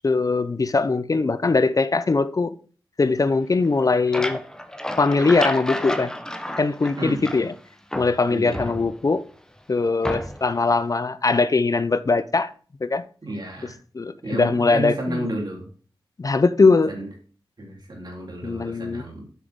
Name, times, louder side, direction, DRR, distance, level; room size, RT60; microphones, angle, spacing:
voice 1, 0.0-2.5 3.0-4.4 5.0-6.1 6.6-7.5 8.0-9.2 9.7-12.5 12.8-13.0 13.9-15.2 16.2-16.9 18.4-19.0, left 3 dB, 40° left, 0.5 m, -21 dB
sound 1, 3.6-7.6 7.9-9.2 10.0-10.6, left 1 dB, 10° left, 0.9 m, -31 dB
voice 2, 7.0-7.4 8.3-8.7 13.2-13.8 14.2-15.7 16.9-17.1 17.6-19.2, right 1 dB, 55° right, 3.5 m, -31 dB
8.2 x 6.1 x 3.6 m
cardioid pair, 60°, 9 cm